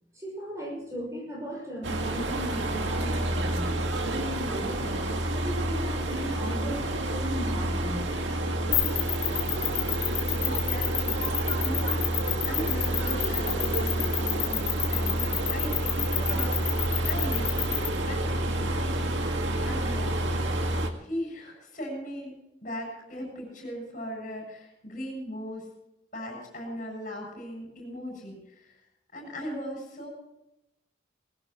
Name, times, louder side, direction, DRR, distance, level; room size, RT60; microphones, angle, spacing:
voice 1, 0.1-3.7 4.0-8.0, equal, 15° right, -1 dB, 5.9 m, -37 dB
sound 1, 1.8-20.9, right 1 dB, 85° right, 1.9 m, -29 dB
sound 2, 8.7-17.9, left 14 dB, 70° left, 1.8 m, -28 dB
voice 2, 10.4-12.1 12.5-15.2 15.5-19.2 19.6-20.5 21.0-25.7 26.1-28.8 29.1-30.1, equal, 45° left, 1 dB, 7.3 m, -38 dB
20.0 x 17.5 x 3.0 m, 0.86 s
head